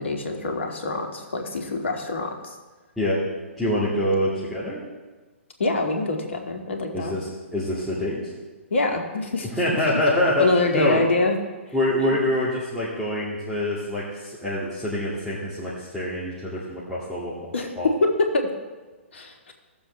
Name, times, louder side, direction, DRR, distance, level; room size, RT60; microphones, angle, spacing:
voice 1, 0.0-2.5 5.6-7.2 8.7-9.5 10.4-11.4 17.5-17.7 18.0-18.1 18.3-18.5 19.1-19.5, left 3 dB, 65° left, 3 dB, 1.8 m, -25 dB
voice 2, 3.6-4.8 6.9-8.2 9.6-10.5 10.7-11.0 11.7-17.9, left 1 dB, ahead, -11 dB, 2.1 m, -25 dB
17.0 x 7.0 x 3.3 m, 1.3 s
figure-of-eight pair, 125°, 7 cm